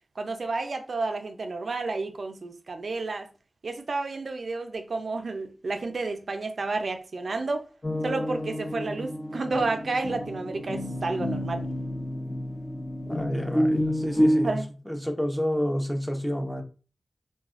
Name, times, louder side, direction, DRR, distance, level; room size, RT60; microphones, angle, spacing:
voice 1, 0.2-3.3 3.6-7.7 8.0-11.6 14.4-14.7, right 3 dB, 70° right, 0.4 m, -31 dB
sound 1, 7.8-14.5, equal, 45° left, 0.9 m, -29 dB
voice 2, 13.1-14.6 14.9-16.6, equal, ahead, 0.6 m, -29 dB
4.0 x 2.2 x 2.4 m
wide cardioid pair, 80°, 0 cm